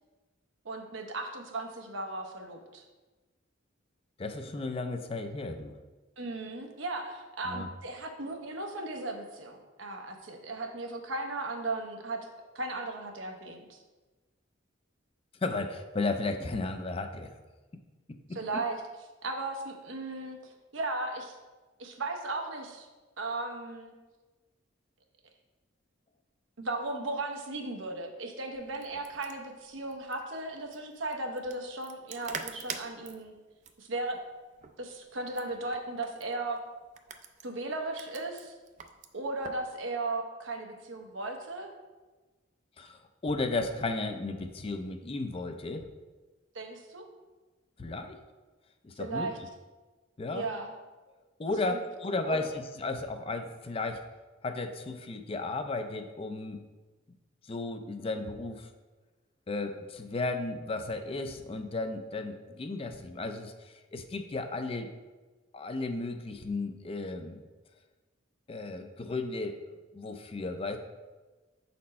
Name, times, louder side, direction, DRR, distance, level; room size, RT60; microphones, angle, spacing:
voice 1, 0.6-2.8 6.2-12.2 12.5-13.8 18.3-18.8 19.2-21.4 21.8-22.9 23.2-23.9 26.6-33.3 33.8-34.2 34.8-36.6 37.4-38.5 39.1-41.7 46.5-47.1 49.0-49.4 50.3-50.7 51.7-51.8 52.2-52.4, right 2 dB, 80° right, 3 dB, 0.9 m, -36 dB
voice 2, 4.2-5.8 7.4-7.7 15.4-17.3 18.3-18.6 42.8-45.9 47.8-48.2 48.8-49.3 50.2-50.4 51.4-54.0 54.4-56.6 57.5-58.7 59.5-64.9 65.5-67.4 68.5-69.7 69.9-70.8, left 3 dB, 30° left, 7 dB, 0.4 m, -34 dB
sound 1, 28.5-39.7, right 6 dB, 40° right, 0.4 m, -47 dB
6.5 x 4.3 x 4.2 m, 1.2 s
head